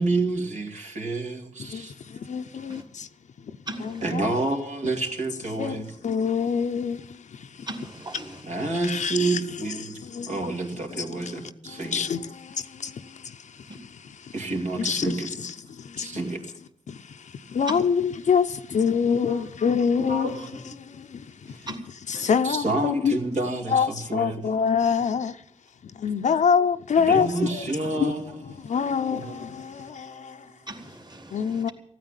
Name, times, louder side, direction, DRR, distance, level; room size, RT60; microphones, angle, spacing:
voice 1, 0.0-1.9 2.6-2.7 4.0-5.9 8.4-10.0 10.3-12.0 14.3-15.4 16.0-16.5 19.3-19.4 20.0-20.5 21.5-21.7 22.4-24.4 26.3-26.4 27.0-28.2 28.5-30.6, right 2 dB, 75° right, 2.7 m, -29 dB
voice 2, 1.6-3.1 3.8-4.5 5.6-7.7 8.6-10.4 10.9-11.4 11.7-13.7 14.2-14.3 14.7-16.2 16.9-21.7 22.1-23.2 23.7-25.4 25.8-27.6 27.9-30.5 31.3-31.7, left 6 dB, 80° left, 0.6 m, -26 dB
voice 3, 3.7-4.0 7.7-8.4 13.7-13.8 17.7-17.8 21.7-21.8 22.1-22.3 26.2-26.3 30.7-31.7, right 1 dB, 35° right, 2.5 m, -38 dB
15.0 x 9.2 x 8.8 m
cardioid pair, 50°, 12 cm